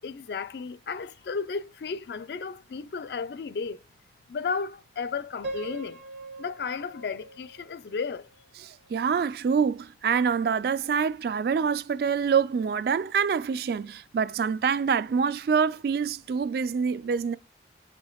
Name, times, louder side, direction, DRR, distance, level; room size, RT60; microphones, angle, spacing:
voice 1, 0.0-3.8 4.3-6.0 6.4-8.3, left 5 dB, 65° left, 0.4 m, -33 dB
Piano, 5.4-8.4, right 2 dB, 75° right, 0.9 m, -41 dB
voice 2, 8.7-17.4, right 6 dB, 55° right, 0.3 m, -26 dB
8.1 x 5.2 x 2.3 m
head